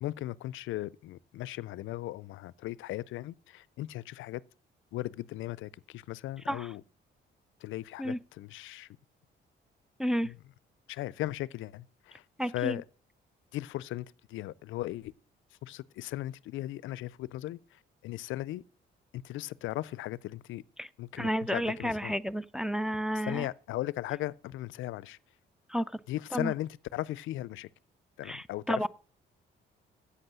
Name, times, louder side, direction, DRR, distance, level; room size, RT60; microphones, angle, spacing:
voice 1, 0.0-4.4 4.9-6.8 7.6-8.9 10.2-10.4 10.9-12.2 12.5-12.8 13.5-15.1 15.6-18.6 19.1-20.6 21.0-22.2 23.3-25.2 26.1-27.7 28.2-28.9, left 15 dB, 80° left, 0.4 m, -37 dB
voice 2, 12.4-12.8 20.8-20.9 21.2-23.5 25.7-26.0 26.3-26.5 28.2-28.9, equal, 5° right, 0.4 m, -31 dB
8.3 x 7.9 x 7.4 m
cardioid pair, 90°, 20 cm